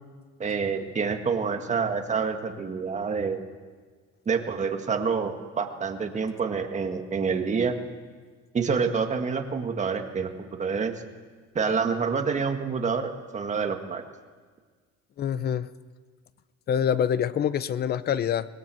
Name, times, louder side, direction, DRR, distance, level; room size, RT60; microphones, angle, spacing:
voice 1, 0.4-3.4 4.3-7.8 8.5-10.9 11.6-14.0, right 5 dB, 25° right, 5 dB, 1.8 m, -27 dB
voice 2, 15.2-15.7 16.7-18.5, left 9 dB, 35° left, 15 dB, 0.8 m, -25 dB
25.0 x 20.0 x 7.8 m, 1.5 s
cardioid pair, 155°, 29 cm